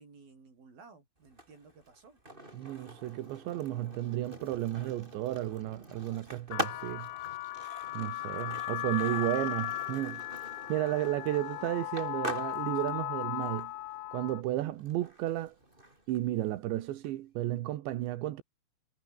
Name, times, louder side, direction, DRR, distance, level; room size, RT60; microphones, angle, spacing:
voice 1, 0.0-2.2 9.0-9.1, right 4 dB, 55° right, 8.7 m, -56 dB
Skateboard, 1.2-17.1, right 1 dB, 10° right, 5.7 m, -45 dB
voice 2, 2.5-7.1 8.0-10.2 10.7-13.7 14.1-15.6 16.1-18.4, right 14 dB, 85° right, 3.7 m, -33 dB
sound 1, 6.5-14.4, left 17 dB, 90° left, 1.9 m, -37 dB
omnidirectional pair, 5.0 m